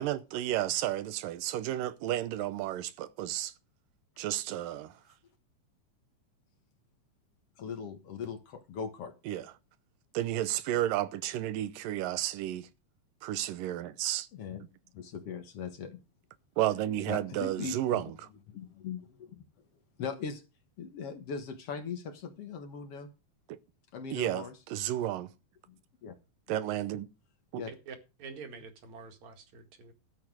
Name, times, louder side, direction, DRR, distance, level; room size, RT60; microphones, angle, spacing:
voice 1, 0.0-3.5 4.2-5.0 9.3-9.5 10.1-12.7 13.2-14.3 16.6-18.1 23.5-23.6 24.1-25.3 26.5-27.1 27.5-27.6, right 13 dB, 90° right, 2.6 m, -32 dB
voice 2, 7.6-9.1 14.3-14.6 14.9-16.0 17.1-18.0 18.5-19.4 20.0-20.4 20.8-23.1 23.9-24.5 25.7-26.1 27.6-27.7, left 6 dB, 55° left, 2.1 m, -40 dB
voice 3, 27.7-29.9, right 5 dB, 60° right, 3.3 m, -47 dB
13.0 x 8.6 x 4.8 m
omnidirectional pair, 3.8 m